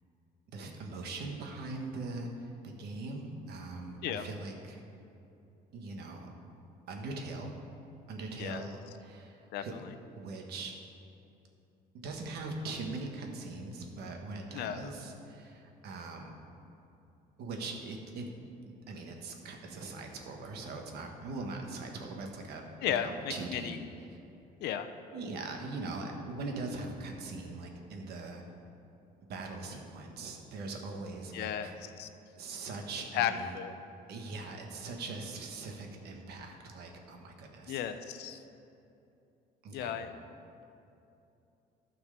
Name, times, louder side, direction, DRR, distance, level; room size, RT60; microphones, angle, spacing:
voice 1, 0.5-4.8 5.7-6.3 6.9-7.5 8.1-9.7 10.1-10.7 12.0-16.3 17.4-18.3 18.7-23.8 24.1-24.2 25.1-28.4 29.3-31.8 32.3-33.5 34.1-37.8 39.6-40.0, right 3 dB, 75° right, 2 dB, 1.4 m, -41 dB
voice 2, 9.5-9.9 14.5-14.9 22.8-23.8 24.6-24.9 31.3-32.1 33.1-33.7 37.7-38.4 39.7-40.1, left 9 dB, 80° left, 9 dB, 0.6 m, -34 dB
12.0 x 4.6 x 6.7 m, 2.8 s
cardioid pair, 110°, 17 cm